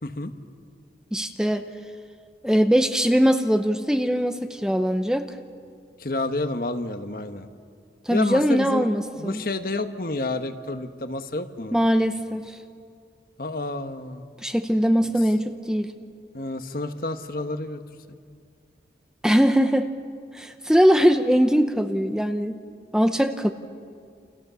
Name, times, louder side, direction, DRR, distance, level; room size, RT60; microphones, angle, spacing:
voice 1, 0.0-0.3 6.0-7.5 8.1-8.9 9.1-11.8 13.4-14.3 16.3-17.8 18.1-18.2, left 2 dB, 55° left, 8 dB, 1.3 m, -29 dB
voice 2, 1.1-1.7 2.4-5.3 8.1-9.4 11.7-12.6 14.4-15.9 19.2-19.9 20.3-22.6 22.9-23.5, equal, 5° right, 8 dB, 0.8 m, -21 dB
29.0 x 28.0 x 7.0 m, 2.2 s
head